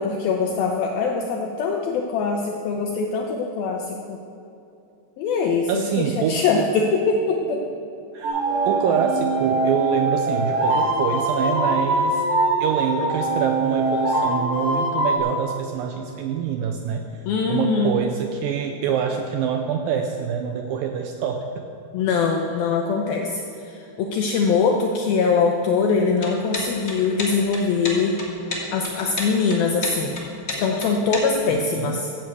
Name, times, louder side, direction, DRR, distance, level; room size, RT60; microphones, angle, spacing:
voice 1, 0.0-4.2 5.2-7.6 17.3-18.0 21.9-28.2 28.7-30.2 30.6-32.1, left 4 dB, 75° left, 1 dB, 2.4 m, -22 dB
voice 2, 5.7-6.5 8.1-12.2 12.6-17.2 17.5-21.7 31.5-32.0, right 7 dB, 90° right, 5 dB, 2.0 m, -26 dB
sound 1, 8.2-15.2, right 2 dB, 65° right, 4.1 m, -22 dB
sound 2, 26.2-31.5, left 2 dB, 30° left, 1.8 m, -31 dB
15.0 x 8.0 x 8.1 m, 2.7 s
omnidirectional pair, 4.9 m